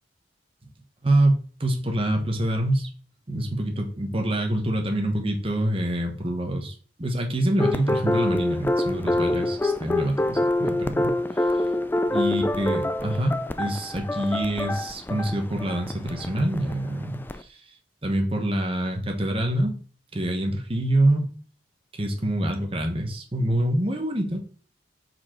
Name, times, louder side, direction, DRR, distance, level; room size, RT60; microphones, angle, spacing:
voice 1, 1.0-2.9 3.3-11.5 12.1-17.6 18.0-19.8 20.1-21.3 22.0-24.5, right 1 dB, 30° right, 3 dB, 1.2 m, -26 dB
sound 1, 7.6-17.4, left 1 dB, 10° left, 0.3 m, -26 dB
5.3 x 4.5 x 4.4 m, 0.42 s
head